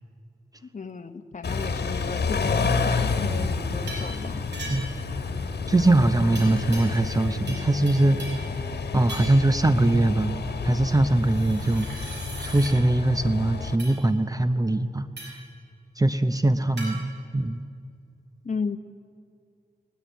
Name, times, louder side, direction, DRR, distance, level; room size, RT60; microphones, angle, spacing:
voice 1, 0.7-4.4 18.4-18.8, left 4 dB, 45° left, 8 dB, 1.2 m, -34 dB
Car / Idling / Accelerating revving vroom, 1.4-13.8, left 4 dB, 70° left, 1.7 m, -30 dB
sound 1, 3.9-4.1 4.5-5.0 6.3-7.2 7.5-8.5 9.1-9.5 11.2-12.7 13.8-14.0 15.2-15.5 16.8-16.9, right 2 dB, 90° right, 5.8 m, -39 dB
voice 2, 5.7-8.2 8.9-15.4 16.0-17.6, right 2 dB, 20° right, 10 dB, 0.8 m, -22 dB
sound 2, 7.3-15.0, left 1 dB, 70° right, 7.1 m, -49 dB
20.0 x 19.0 x 9.3 m, 2.4 s
wide cardioid pair, 125°, 17 cm